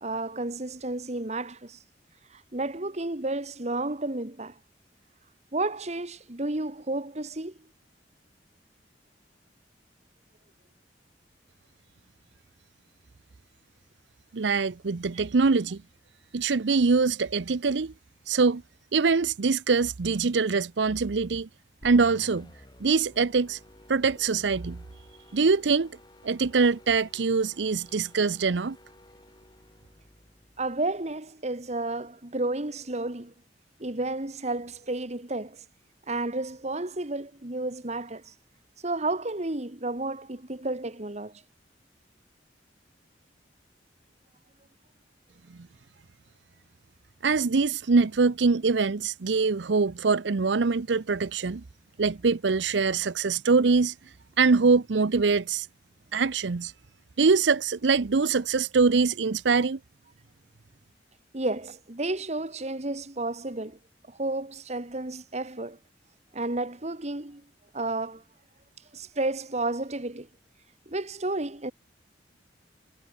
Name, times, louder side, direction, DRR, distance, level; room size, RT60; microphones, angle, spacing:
voice 1, 0.0-1.8 2.3-4.6 5.5-7.6 30.6-33.3 33.8-35.6 36.1-38.3 38.8-41.4 61.3-63.8 64.1-65.8 66.3-67.4 67.7-68.2 68.9-70.3 70.9-71.7, right 2 dB, 40° right, 1.7 m, -32 dB
voice 2, 14.3-15.8 16.3-17.9 18.3-18.6 18.9-21.5 21.8-22.5 22.8-23.6 23.9-24.8 25.3-25.9 26.2-28.8 47.2-51.6 52.0-53.9 54.4-55.7 56.1-56.7 57.2-59.8, right 4 dB, 80° right, 0.7 m, -23 dB
sound 1, 21.8-31.2, left 1 dB, 25° left, 5.0 m, -53 dB
head